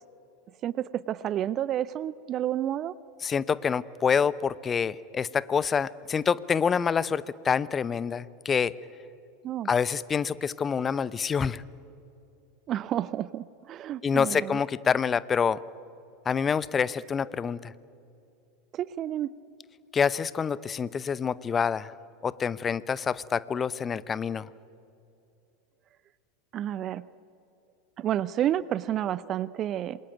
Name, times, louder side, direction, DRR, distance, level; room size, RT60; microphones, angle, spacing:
voice 1, 0.6-2.9 9.4-9.7 12.7-14.6 18.7-19.3 26.5-27.1 28.0-30.0, right 11 dB, 35° right, 19 dB, 0.6 m, -30 dB
voice 2, 3.2-8.7 9.7-11.6 14.0-15.6 16.3-17.7 19.9-21.9 22.2-24.5, left 6 dB, 25° left, 19 dB, 0.8 m, -27 dB
27.5 x 21.5 x 9.2 m, 2.7 s
figure-of-eight pair, 85°, 0 cm